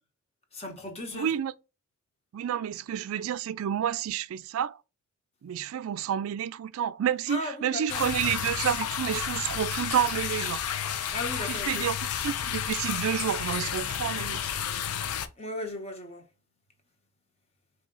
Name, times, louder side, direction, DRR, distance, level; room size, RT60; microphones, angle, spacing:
voice 1, 0.5-1.3 7.3-8.2 11.1-11.9 15.4-16.2, left 1 dB, 30° left, 0.9 m, -36 dB
voice 2, 1.1-1.5 2.3-4.8 5.4-10.6 11.5-14.4, right 9 dB, 70° right, 0.3 m, -29 dB
sound 1, 7.9-15.3, left 9 dB, 85° left, 0.5 m, -31 dB
4.1 x 2.8 x 3.7 m
head